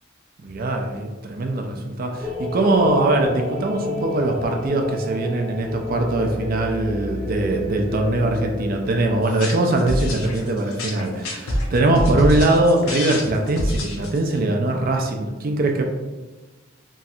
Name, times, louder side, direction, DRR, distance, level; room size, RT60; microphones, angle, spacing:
voice 1, 0.4-15.8, right 2 dB, 45° right, 3 dB, 0.4 m, -21 dB
sound 1, 2.2-9.2, left 2 dB, ahead, 0.6 m, -30 dB
sound 2, 9.2-14.4, left 1 dB, 85° left, 0.6 m, -26 dB
3.1 x 2.4 x 2.7 m, 1.2 s
head